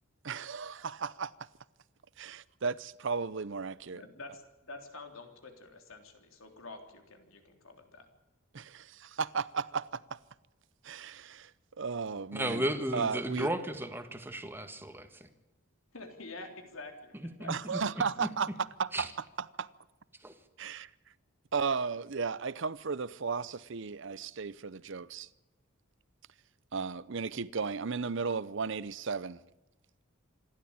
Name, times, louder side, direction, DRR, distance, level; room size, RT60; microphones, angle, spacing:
voice 1, 0.2-1.5 2.2-4.0 8.5-10.2 10.8-11.5 11.8-12.7 12.9-13.5 17.5-19.1 19.6-19.7 20.6-20.9 21.5-25.3 26.7-29.4, right 5 dB, 60° right, 0.7 m, -35 dB
voice 2, 3.9-8.1 15.9-17.8, left 2 dB, 80° left, 3.6 m, -48 dB
voice 3, 12.3-15.3 17.1-17.8 18.2-18.3 18.9-19.1 20.2-20.3, right 1 dB, 10° right, 1.7 m, -35 dB
26.5 x 12.5 x 8.8 m
head